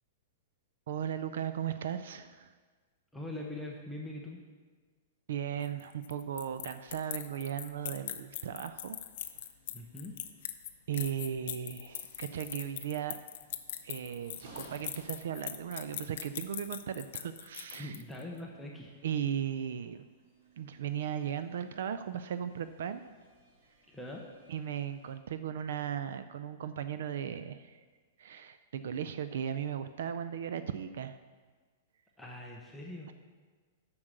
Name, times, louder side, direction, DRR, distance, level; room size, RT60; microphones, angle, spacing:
voice 1, 0.9-2.5 5.3-9.0 10.9-13.2 13.8-18.0 19.0-20.1 20.6-23.0 24.5-27.8 28.2-31.2, right 9 dB, 65° right, 12 dB, 0.4 m, -37 dB
voice 2, 3.1-4.4 9.7-10.1 17.8-19.0 23.9-24.2 32.2-33.1, left 1 dB, ahead, -2 dB, 0.7 m, -42 dB
sound 1, 5.6-18.2, left 11 dB, 50° left, 0.5 m, -41 dB
sound 2, 7.9-25.2, right 2 dB, 40° right, 1.7 m, -62 dB
7.4 x 6.1 x 6.5 m, 1.5 s
supercardioid pair, 175°, 0 cm